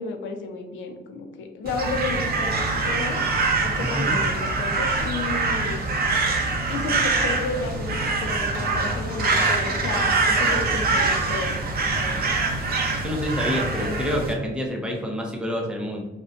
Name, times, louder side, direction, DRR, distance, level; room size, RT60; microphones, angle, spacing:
voice 1, 0.0-3.2 3.6-5.8 6.7-11.6 12.0-12.4 13.8-14.1 14.4-14.5, left 4 dB, 75° left, 4 dB, 0.5 m, -32 dB
Crow, 1.7-14.3, right 3 dB, 50° right, 0.5 m, -24 dB
voice 2, 3.8-4.2 13.0-16.0, equal, 5° right, 0 dB, 0.5 m, -28 dB
2.5 x 2.1 x 2.4 m, 1.1 s
cardioid pair, 90°, 20 cm